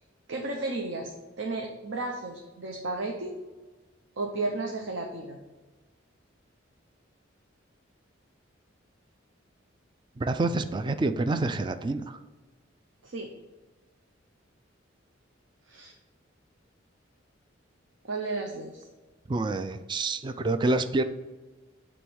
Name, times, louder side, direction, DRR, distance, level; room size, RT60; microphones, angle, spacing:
voice 1, 0.3-3.3 4.2-5.4 13.0-13.3 15.7-15.9 18.0-18.8, right 2 dB, 70° right, 1 dB, 0.8 m, -33 dB
voice 2, 10.2-12.2 19.3-21.0, right 2 dB, 25° right, 10 dB, 0.3 m, -27 dB
7.9 x 3.1 x 6.3 m, 1.2 s
head